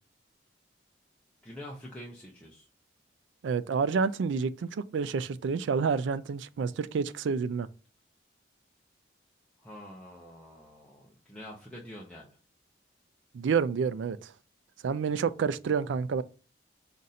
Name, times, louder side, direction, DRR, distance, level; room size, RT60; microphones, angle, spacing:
voice 1, 1.4-2.7 9.6-12.4, equal, 5° left, 0.6 m, -46 dB
voice 2, 3.4-7.7 13.3-14.3 14.8-16.2, right 5 dB, 80° right, 0.3 m, -29 dB
5.2 x 2.5 x 4.1 m
head